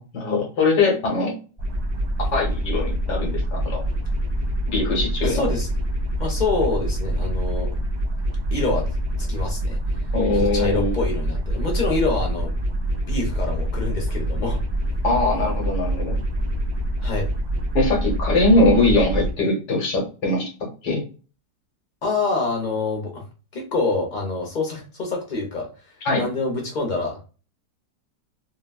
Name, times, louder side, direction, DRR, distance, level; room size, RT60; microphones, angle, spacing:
voice 1, 0.0-1.3 2.3-3.8 4.7-5.4 10.1-10.9 15.0-16.2 17.8-20.5 20.8-21.0 26.1-26.2, left 2 dB, 75° left, -1 dB, 1.9 m, -21 dB
sound 1, 1.6-19.3, right 1 dB, 40° right, 0.4 m, -25 dB
voice 2, 5.2-5.7 6.2-7.7 8.5-8.9 9.2-9.8 10.3-12.5 13.0-14.6 17.0-17.3 22.0-23.2 23.5-25.7 26.1-27.3, left 3 dB, 50° left, 0 dB, 0.5 m, -26 dB
3.8 x 2.1 x 2.2 m, 0.35 s
omnidirectional pair, 1.8 m